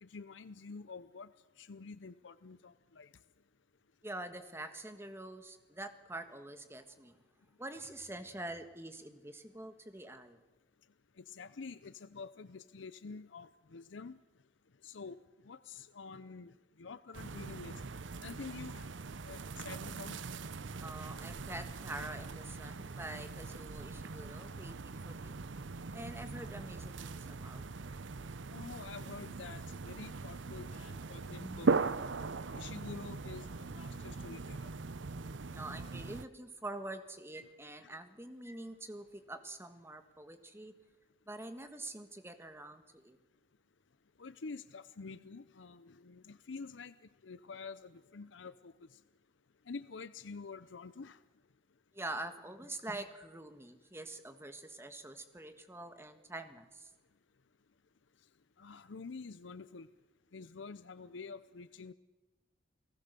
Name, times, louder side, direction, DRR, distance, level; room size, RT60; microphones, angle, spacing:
voice 1, 0.0-1.3 1.6-3.1 11.2-14.2 14.8-15.2 15.4-17.8 18.2-18.9 19.2-20.2 28.5-31.7 32.5-34.7 37.8-37.9 44.2-47.0 47.2-49.0 49.7-51.2 58.6-59.9 60.3-61.9, left 4 dB, 80° left, 15 dB, 0.7 m, -48 dB
voice 2, 4.0-7.1 7.6-10.4 20.8-25.4 25.9-27.9 31.4-31.7 35.5-40.7 41.3-43.2 51.9-56.9, right 2 dB, 15° right, 8 dB, 1.6 m, -46 dB
sound 1, 17.1-36.2, right 4 dB, 80° right, 0.7 m, -40 dB
29.5 x 18.5 x 6.8 m, 1.1 s
head